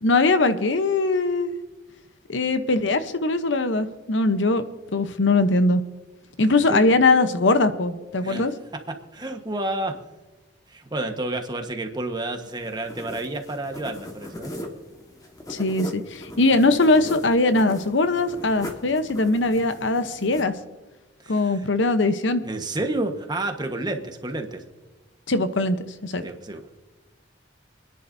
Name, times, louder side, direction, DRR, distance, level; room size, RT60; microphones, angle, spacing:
voice 1, 0.0-1.5 2.3-4.6 4.9-5.8 6.4-8.5 15.5-20.5 21.3-22.4 25.3-25.8 26.0-26.2, left 2 dB, 75° left, 10 dB, 0.9 m, -21 dB
voice 2, 8.7-10.0 10.7-14.5 21.2-21.7 22.4-24.6 26.2-26.7, right 2 dB, 20° right, 5 dB, 1.3 m, -30 dB
sound 1, 12.4-20.4, left 1 dB, 20° left, 1.4 m, -39 dB
28.5 x 10.5 x 2.7 m, 1.1 s
head